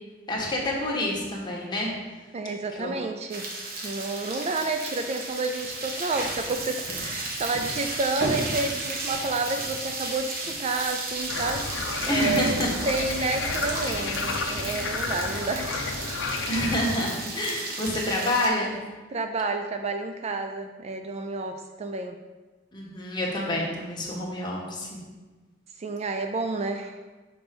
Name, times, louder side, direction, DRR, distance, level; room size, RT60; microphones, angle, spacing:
voice 1, 0.3-1.9 2.8-2.9 12.1-12.7 16.5-18.7 22.7-25.0, left 1 dB, 25° left, -3 dB, 1.4 m, -27 dB
voice 2, 2.3-3.5 3.8-15.9 19.1-22.2 25.8-27.0, right 3 dB, 35° right, 6 dB, 0.4 m, -30 dB
sound 1, 3.3-18.5, right 2 dB, 50° right, 1.2 m, -33 dB
sound 2, 11.3-16.8, left 4 dB, 75° left, 0.6 m, -31 dB
5.9 x 4.4 x 5.2 m, 1.3 s
head